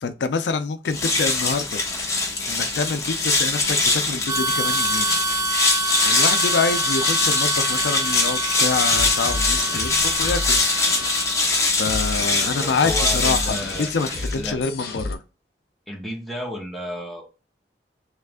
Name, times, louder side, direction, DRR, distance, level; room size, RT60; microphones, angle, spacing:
voice 1, 0.0-1.8 2.5-5.2 6.0-10.6 11.8-15.2, left 4 dB, 85° left, 0.4 m, -26 dB
sound 1, 0.8-14.5, left 3 dB, 20° left, 0.8 m, -23 dB
Harmonica, 4.3-11.6, right 2 dB, 20° right, 0.4 m, -27 dB
sound 2, 8.9-15.2, left 2 dB, 55° left, 0.7 m, -31 dB
voice 2, 12.6-13.9 14.2-14.6 15.9-17.2, equal, ahead, 1.1 m, -32 dB
3.3 x 3.1 x 3.5 m
head